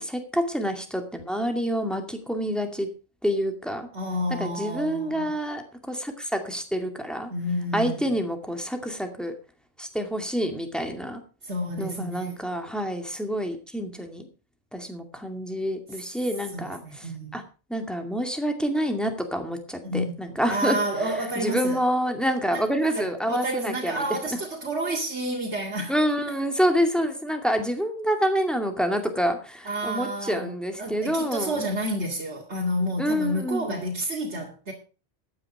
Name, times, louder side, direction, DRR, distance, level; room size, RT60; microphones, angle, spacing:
voice 1, 0.0-2.9 3.2-3.9 4.4-7.3 7.7-9.3 9.8-11.2 11.8-14.3 14.7-17.1 17.3-17.4 17.7-20.8 21.4-24.0 25.9-31.6 33.0-33.8, equal, ahead, 2.3 m, -27 dB
voice 2, 3.9-5.3 7.3-8.2 11.4-12.3 16.5-17.4 19.8-20.2 20.5-21.8 22.5-25.9 26.3-26.4 29.6-30.5 30.8-34.7, right 1 dB, 85° right, 2.7 m, -30 dB
13.5 x 9.6 x 4.9 m
omnidirectional pair, 1.1 m